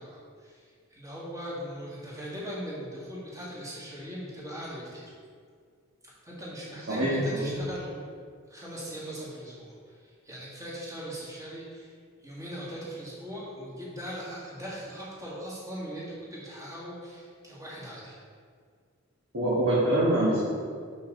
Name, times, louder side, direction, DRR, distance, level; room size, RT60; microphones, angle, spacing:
voice 1, 0.0-5.1 6.0-8.0 8.5-11.9 12.2-18.2, equal, 15° right, -7 dB, 1.8 m, -40 dB
voice 2, 19.3-20.5, right 1 dB, 65° right, -8 dB, 1.4 m, -24 dB
6.3 x 5.6 x 3.9 m, 2.1 s
head